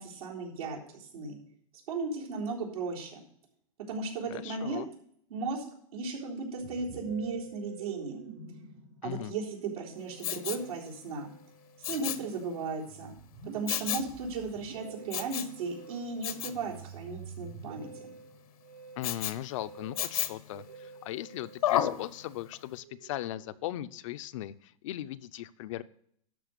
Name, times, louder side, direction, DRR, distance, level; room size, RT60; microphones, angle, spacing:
voice 1, 0.0-1.4 1.9-3.2 3.9-4.9 5.3-5.6 5.9-8.2 9.0-11.3 11.9-13.1 13.5-18.0, right 4 dB, 80° right, -3 dB, 3.8 m, -36 dB
voice 2, 4.3-4.9 9.0-9.3 19.0-25.8, left 14 dB, 60° left, 12 dB, 0.6 m, -38 dB
Musical instrument, 6.6-24.2, right 5 dB, 60° right, 4.5 m, -49 dB
Respiratory sounds, 10.2-10.7 11.8-12.3 13.7-14.1 15.1-15.6 16.2-16.6 19.0-19.4 20.0-20.5 21.6-22.0 22.5-22.6, left 12 dB, 75° left, 1.0 m, -31 dB
12.5 x 4.8 x 6.7 m, 0.67 s
hypercardioid pair, 140°, 19 cm